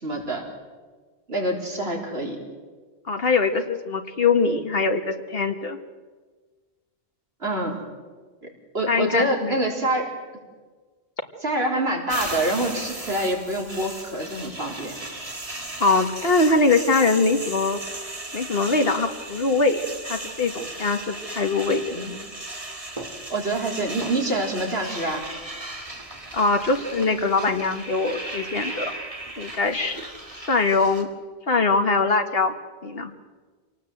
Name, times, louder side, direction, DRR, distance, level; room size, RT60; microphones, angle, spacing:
voice 1, 0.0-0.4 1.3-2.4 7.4-7.8 8.7-10.1 11.4-15.0 21.9-22.1 23.3-25.2, right 1 dB, 75° right, 0 dB, 4.4 m, -26 dB
voice 2, 3.1-5.8 8.8-9.6 15.8-17.8 18.3-21.8 26.3-28.9 29.4-30.0 30.5-31.1 31.5-32.5 32.8-33.1, left 3 dB, 65° left, 6 dB, 2.0 m, -22 dB
sound 1, 12.1-31.0, right 2 dB, 35° right, 2.4 m, -36 dB
27.0 x 18.5 x 7.9 m, 1.4 s
omnidirectional pair, 1.1 m